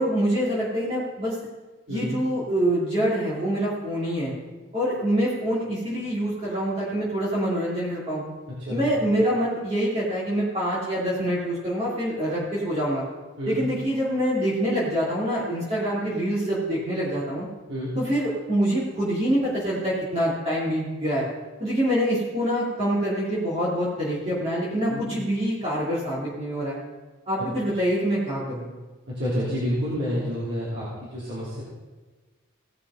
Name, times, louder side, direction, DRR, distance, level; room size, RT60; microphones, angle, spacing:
voice 1, 0.0-1.3 1.9-4.3 4.7-8.2 8.7-13.0 13.5-17.5 17.9-21.2 21.6-26.8 27.3-28.7, equal, 30° right, -8 dB, 2.9 m, -25 dB
voice 2, 8.5-8.8 13.4-13.6 17.7-17.9 24.9-25.1 27.4-27.5 29.1-31.6, equal, 60° right, -9 dB, 3.3 m, -29 dB
17.5 x 5.9 x 5.7 m, 1.3 s
head